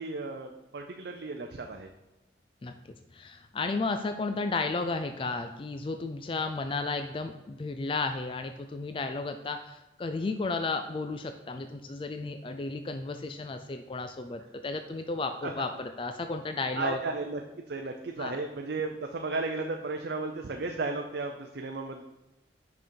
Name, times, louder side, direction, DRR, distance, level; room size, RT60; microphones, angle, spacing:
voice 1, 0.0-1.9 15.4-15.5 16.8-17.4 17.7-22.0, right 3 dB, 60° right, 3 dB, 0.5 m, -34 dB
voice 2, 2.6-17.0 18.2-18.4, left 3 dB, 30° left, 7 dB, 0.3 m, -33 dB
6.2 x 5.2 x 4.4 m, 1.0 s
head